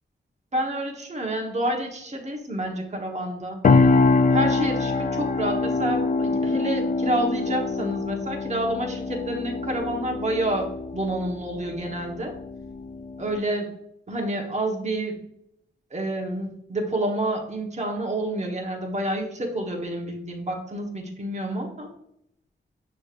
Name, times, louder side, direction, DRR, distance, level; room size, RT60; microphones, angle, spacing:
voice 1, 0.5-3.6 4.3-12.3 13.2-13.7 14.1-15.2 15.9-21.9, right 1 dB, 35° right, 1 dB, 1.1 m, -29 dB
sound 1, 3.6-13.4, left 3 dB, 40° left, 0.4 m, -24 dB
6.3 x 3.1 x 2.4 m, 0.76 s
cardioid pair, 55°, 20 cm